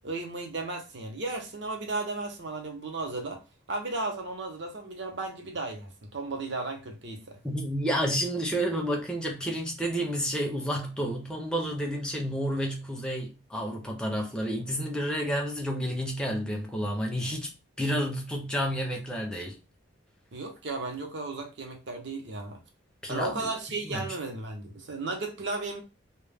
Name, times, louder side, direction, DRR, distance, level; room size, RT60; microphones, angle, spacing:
voice 1, 0.0-3.4 3.7-7.4 20.3-22.6 23.1-25.8, right 3 dB, 60° right, 0.6 m, -35 dB
voice 2, 7.4-19.6 23.0-23.5 23.8-24.1, equal, 5° left, 0.4 m, -30 dB
2.1 x 2.0 x 3.2 m
head